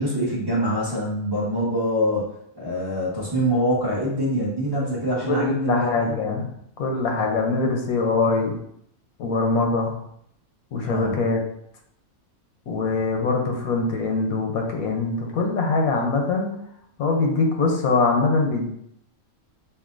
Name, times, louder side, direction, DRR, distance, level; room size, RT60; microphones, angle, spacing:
voice 1, 0.0-2.2 2.5-6.1 10.8-11.2, equal, 20° right, -6 dB, 1.2 m, -24 dB
voice 2, 5.3-8.6 9.2-10.0 10.7-11.4 12.7-16.5 17.0-18.7, left 3 dB, 85° left, 2 dB, 1.3 m, -23 dB
6.8 x 2.6 x 2.6 m, 0.73 s
omnidirectional pair, 1.5 m